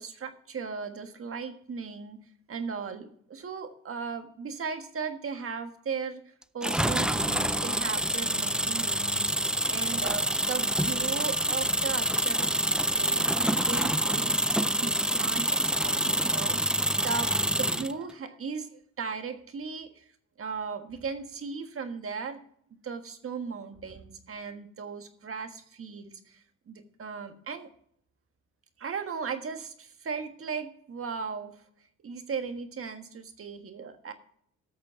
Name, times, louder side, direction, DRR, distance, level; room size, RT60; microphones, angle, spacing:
voice 1, 0.0-2.2 2.5-6.2 6.5-12.5 12.9-20.1 20.4-22.4 22.8-27.7 28.8-31.6 32.0-34.1, right 5 dB, 45° right, 7 dB, 1.5 m, -37 dB
sound 1, 6.6-17.9, right 1 dB, 5° right, 0.3 m, -27 dB
13.5 x 6.8 x 5.7 m, 0.65 s
cardioid pair, 90°, 30 cm